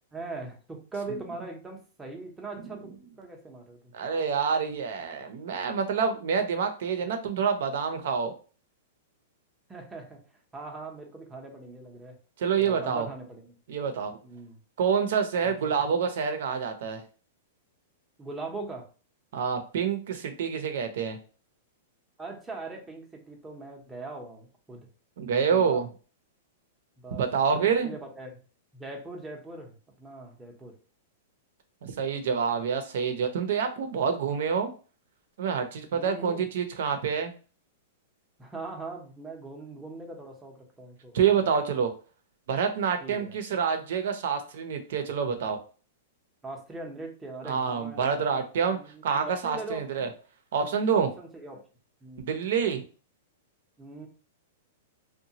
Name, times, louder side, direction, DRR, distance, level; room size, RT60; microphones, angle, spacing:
voice 1, 0.1-3.9 9.7-10.2 10.5-12.2 12.6-13.5 14.2-14.6 15.4-15.7 18.2-18.9 22.2-24.9 25.2-25.8 27.0-28.4 28.7-30.8 35.9-36.5 38.4-41.2 43.0-43.4 46.4-50.1 51.2-51.7 52.0-52.3 53.8-54.1, right 3 dB, 10° right, 1 dB, 0.7 m, -41 dB
voice 2, 3.9-8.3 12.4-13.1 13.7-14.2 14.8-17.0 19.3-21.2 25.2-25.9 27.1-27.9 31.8-34.7 35.4-37.3 41.1-41.9 42.5-45.6 47.4-50.1 50.5-51.1 52.2-52.8, right 6 dB, 70° right, 7 dB, 0.7 m, -27 dB
2.9 x 2.2 x 2.8 m, 0.37 s
hypercardioid pair, 145°, 0 cm